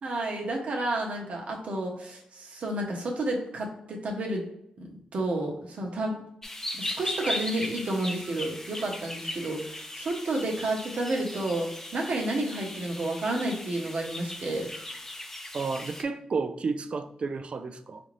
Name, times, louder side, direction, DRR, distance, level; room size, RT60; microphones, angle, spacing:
voice 1, 0.0-4.4 4.8-6.1 6.8-14.7, right 2 dB, 65° right, 0 dB, 0.9 m, -31 dB
sound 1, 6.4-16.0, left 1 dB, 15° left, 0.5 m, -38 dB
voice 2, 15.5-18.0, right 4 dB, 50° right, 10 dB, 0.3 m, -31 dB
4.0 x 2.6 x 3.1 m, 0.76 s
cardioid pair, 80°, 2 cm